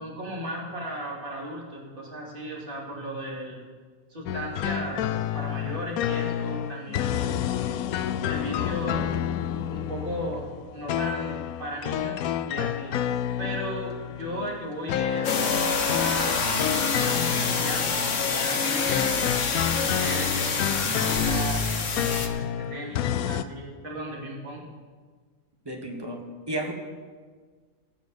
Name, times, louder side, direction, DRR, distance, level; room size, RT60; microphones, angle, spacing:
voice 1, 0.0-3.6 4.1-7.5 8.3-9.2 9.7-12.9 13.4-15.3 15.9-19.2 19.7-21.7 21.9-24.7, equal, 35° right, -3 dB, 2.8 m, -36 dB
sound 1, 4.3-23.4, left 10 dB, 80° left, 1.0 m, -30 dB
sound 2, 15.2-22.3, left 4 dB, 60° left, 1.4 m, -26 dB
voice 2, 25.6-26.7, right 1 dB, 15° right, 1 dB, 1.6 m, -33 dB
18.0 x 6.2 x 7.0 m, 1.5 s
omnidirectional pair, 1.5 m